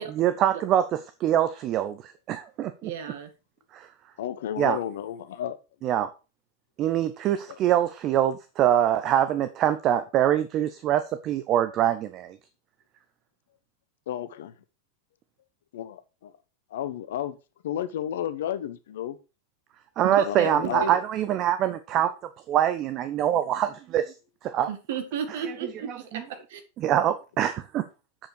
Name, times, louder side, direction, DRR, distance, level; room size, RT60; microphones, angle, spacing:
voice 1, 0.0-2.9 3.7-3.9 4.6-4.8 5.8-6.1 6.8-12.4 20.0-22.1 22.5-24.1 24.4-24.7 25.9-26.2 26.8-27.5, right 11 dB, 35° right, 0.6 m, -24 dB
voice 2, 2.8-3.3 20.0-20.5 20.8-20.9 24.7-26.2 26.5-26.6, right 7 dB, 55° right, 1.9 m, -33 dB
voice 3, 4.2-5.6 7.5-7.6 14.1-14.5 15.7-15.9 16.2-16.3 16.7-17.4 17.6-19.2 20.2-20.9, left 10 dB, 55° left, 0.8 m, -32 dB
7.5 x 6.9 x 4.6 m
figure-of-eight pair, 90°, 0 cm